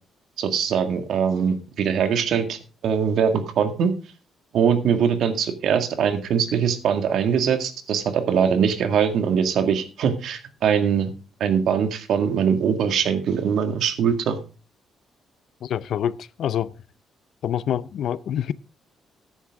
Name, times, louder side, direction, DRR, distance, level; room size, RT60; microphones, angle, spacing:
voice 1, 0.4-2.6 2.8-3.9 4.5-11.1 11.4-14.4, right 7 dB, 70° right, 1.9 m, -22 dB
voice 2, 15.6-16.7 17.4-18.5, left 10 dB, 65° left, 0.5 m, -26 dB
14.0 x 10.0 x 3.6 m
cardioid pair, 140°, 0 cm